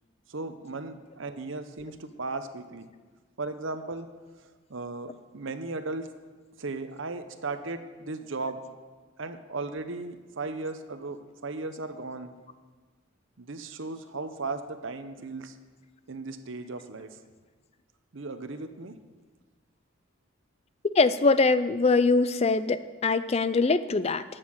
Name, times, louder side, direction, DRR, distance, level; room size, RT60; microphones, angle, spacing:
voice 1, 0.3-2.9 3.4-4.1 4.7-6.1 6.6-8.6 9.2-12.4 13.4-15.6 16.1-17.2 18.1-18.9, right 3 dB, 60° right, 9 dB, 0.8 m, -36 dB
voice 2, 20.9-24.2, left 3 dB, 30° left, 14 dB, 0.3 m, -23 dB
11.0 x 6.6 x 7.7 m, 1.4 s
head